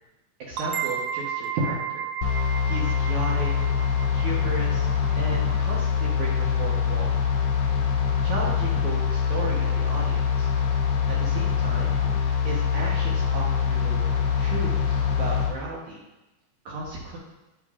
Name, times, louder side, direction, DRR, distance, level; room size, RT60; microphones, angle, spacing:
voice 1, 0.4-2.0 2.6-3.5 4.1-4.9 5.2-7.2 8.2-10.5 11.1-12.0 12.4-16.0 16.7-17.2, right 2 dB, 65° right, -4 dB, 2.1 m, -34 dB
sound 1, 0.6-6.0, right 8 dB, 85° right, 1.9 m, -34 dB
sound 2, 2.2-15.5, left 7 dB, 70° left, 2.1 m, -24 dB
8.2 x 8.2 x 2.5 m, 0.98 s
omnidirectional pair, 4.3 m